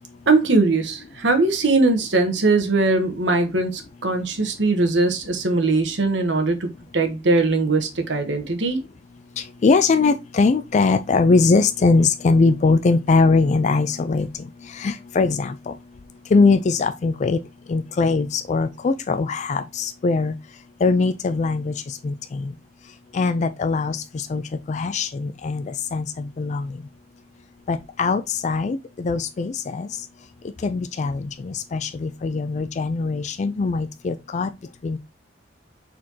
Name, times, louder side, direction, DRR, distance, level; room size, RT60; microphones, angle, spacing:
voice 1, 0.3-8.8, right 3 dB, 75° right, 1.1 m, -20 dB
voice 2, 9.4-14.3 14.7-15.7 16.3-17.4 17.7-20.3 20.8-22.5 23.1-24.4 24.7-26.7 27.7-29.9 30.6-34.5 34.8-35.0, left 4 dB, 40° left, 0.3 m, -21 dB
4.6 x 4.3 x 2.7 m
head